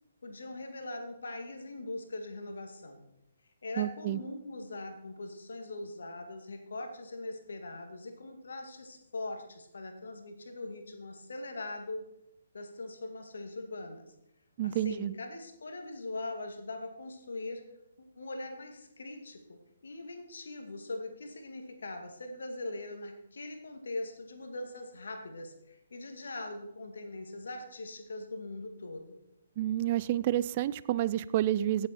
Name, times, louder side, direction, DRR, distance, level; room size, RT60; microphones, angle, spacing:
voice 1, 0.2-3.0 3.6-12.0 12.5-14.1 14.6-17.6 18.0-29.2, left 2 dB, 60° left, 5 dB, 2.2 m, -41 dB
voice 2, 3.8-4.2 14.6-15.1 29.6-31.9, right 13 dB, 30° right, 18 dB, 0.3 m, -29 dB
16.5 x 7.9 x 4.4 m, 0.81 s
figure-of-eight pair, 135°, 0 cm